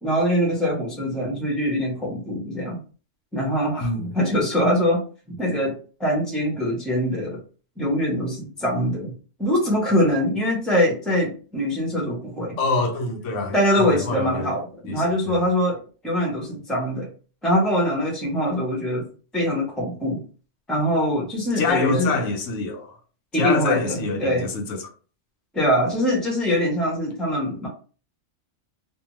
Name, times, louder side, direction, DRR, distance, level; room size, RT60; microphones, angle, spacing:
voice 1, 0.0-2.8 3.3-5.0 5.4-7.4 7.8-9.1 9.4-12.6 13.5-17.1 17.4-19.1 19.3-20.2 20.7-22.2 23.3-24.5 25.5-27.7, equal, ahead, 0.7 m, -23 dB
voice 2, 12.6-14.5 14.9-15.4 21.6-23.0 23.3-24.9, left 3 dB, 80° left, 1.0 m, -26 dB
2.6 x 2.2 x 2.9 m
omnidirectional pair, 1.3 m